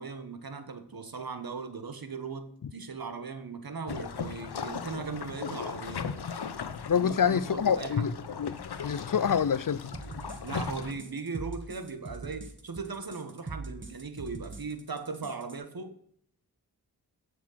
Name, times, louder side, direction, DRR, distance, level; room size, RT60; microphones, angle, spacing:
voice 1, 0.0-6.1 6.9-8.1 10.4-15.9, right 4 dB, 65° right, 1.7 m, -38 dB
sound 1, 3.9-10.9, left 6 dB, 80° left, 1.0 m, -37 dB
voice 2, 6.9-8.6 8.8-9.9, left 7 dB, 55° left, 0.6 m, -27 dB
sound 2, 9.9-15.6, right 3 dB, 30° right, 1.8 m, -43 dB
16.0 x 6.7 x 5.8 m
wide cardioid pair, 65°, 38 cm